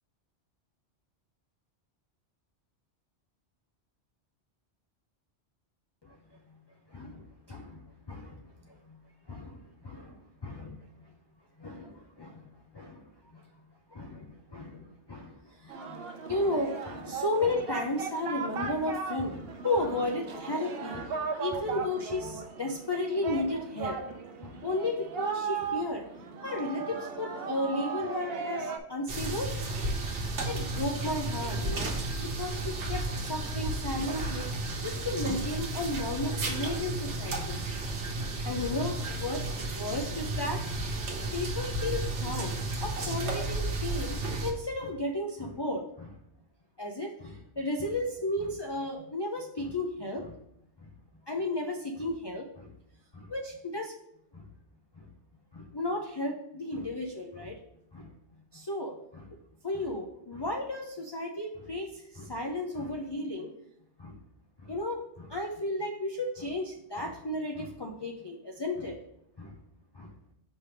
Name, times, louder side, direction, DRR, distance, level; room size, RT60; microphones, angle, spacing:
voice 1, 6.9-9.0 9.3-10.8 11.6-12.5 12.7-13.4 13.9-16.0 16.3-24.0 24.4-29.5 30.3-31.9 32.2-37.7 38.2-40.7 41.2-46.2 46.8-50.4 51.3-52.7 53.1-53.9 54.3-54.4 55.0-55.1 55.5-57.6 57.9-58.1 58.5-59.4 59.6-63.5 64.0-64.2 64.6-69.0 69.4-69.6 69.9-70.1, left 2 dB, 35° left, 1 dB, 0.4 m, -34 dB
Singing, 15.7-28.8, right 5 dB, 65° right, 0.8 m, -37 dB
sound 1, 29.1-44.5, right 2 dB, 85° right, 1.2 m, -33 dB
5.4 x 3.3 x 5.7 m, 0.77 s
omnidirectional pair, 1.1 m